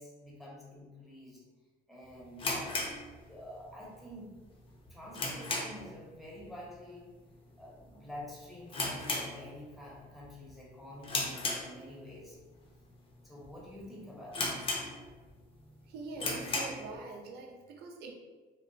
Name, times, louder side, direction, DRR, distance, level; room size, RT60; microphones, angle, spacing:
voice 1, 0.0-1.4 1.9-2.9 3.2-4.3 4.9-7.1 7.6-12.4 13.2-14.6, left 1 dB, ahead, -5 dB, 0.7 m, -48 dB
sound 1, 2.4-3.7 4.0-4.1 4.6-6.0 6.3-6.6 6.8-6.9 7.6-7.9 8.2-8.3 8.7-9.9 10.2-10.5 11.0-12.2 12.7-12.8 13.4-13.5 13.8-13.9 14.3-15.3 15.7-15.8 16.1-16.9, left 2 dB, 30° left, 0.5 m, -35 dB
voice 2, 15.9-18.1, right 3 dB, 75° right, 1 dB, 0.5 m, -44 dB
2.8 x 2.0 x 2.5 m, 1.3 s
cardioid pair, 110°, 17 cm